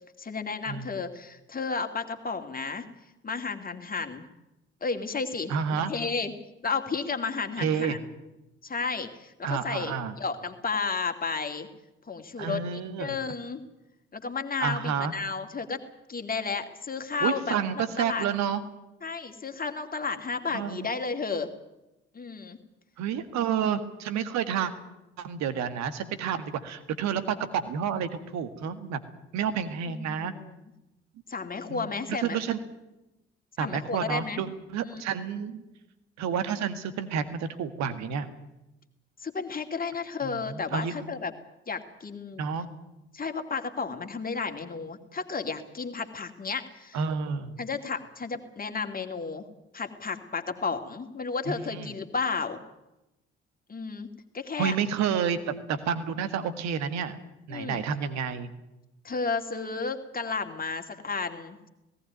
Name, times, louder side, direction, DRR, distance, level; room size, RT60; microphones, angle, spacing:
voice 1, 0.2-2.8 3.2-4.3 4.8-6.3 6.6-8.0 8.6-11.7 12.1-12.7 13.0-13.6 14.1-15.8 16.1-18.2 19.0-21.5 22.1-22.6 29.9-30.5 31.3-32.4 33.6-34.4 34.8-35.0 39.2-41.3 41.7-42.4 43.1-47.0 47.6-49.4 49.7-52.6 53.7-54.1 54.3-54.8 57.5-57.8 59.0-61.7, left 4 dB, 25° left, 6 dB, 2.4 m, -32 dB
voice 2, 5.5-5.9 7.6-8.0 9.4-10.1 12.4-13.2 14.6-15.1 17.2-18.6 20.5-20.9 23.0-24.7 25.2-29.0 29.3-30.3 31.7-32.6 33.6-35.6 36.2-38.3 40.2-41.0 42.4-42.7 46.9-47.5 51.5-51.9 54.6-57.2 57.5-58.5, right 7 dB, 60° right, 11 dB, 1.8 m, -30 dB
18.5 x 16.5 x 9.4 m, 0.96 s
figure-of-eight pair, 40°, 32 cm